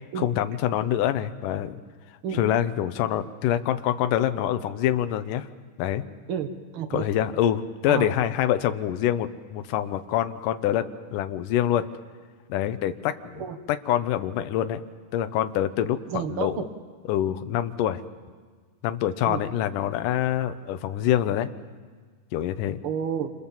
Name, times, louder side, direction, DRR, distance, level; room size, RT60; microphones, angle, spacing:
voice 1, 0.2-1.8 2.3-5.5 5.8-6.0 6.9-11.9 12.5-14.8 15.1-16.0 16.3-16.6 17.1-18.0 18.8-21.5 22.3-22.8, left 11 dB, 70° left, 9 dB, 2.3 m, -25 dB
voice 2, 6.3-7.1 7.9-8.1 13.4-13.6 16.1-16.6 19.3-19.4 22.8-23.3, right 8 dB, 70° right, 7 dB, 1.3 m, -30 dB
28.5 x 27.5 x 7.3 m, 1.5 s
omnidirectional pair, 4.4 m